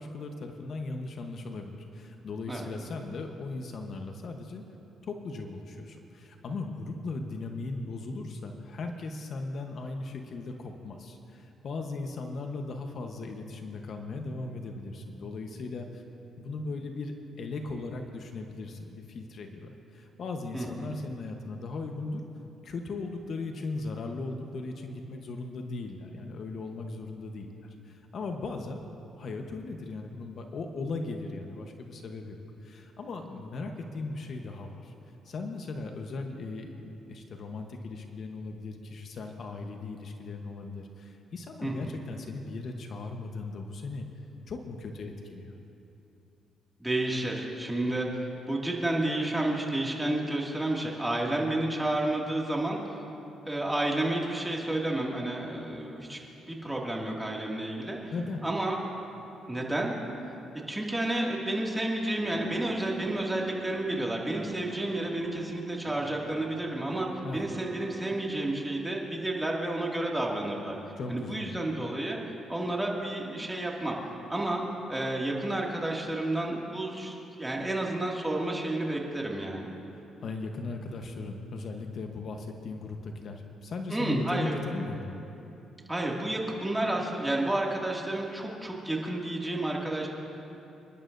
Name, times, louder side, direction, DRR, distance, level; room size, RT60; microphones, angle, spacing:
voice 1, 0.0-4.6 5.0-16.0 16.4-22.2 22.6-27.5 27.8-28.8 29.2-34.9 35.2-44.1 44.5-45.5 58.1-58.5 67.2-67.4 71.0-71.5 79.9-85.2, left 3 dB, 55° left, 4 dB, 1.0 m, -38 dB
voice 2, 41.6-41.9 46.8-53.0 53.5-58.1 58.4-58.8 59.5-60.0 60.7-70.8 71.1-72.2 72.5-74.0 74.3-74.6 74.9-79.7 83.9-84.5 85.9-90.1, right 1 dB, 10° right, -2 dB, 2.2 m, -31 dB
sound 1, 62.2-68.3, right 3 dB, 50° right, 1.4 m, -46 dB
27.0 x 11.5 x 2.6 m, 2.9 s
cardioid pair, 90°, 0 cm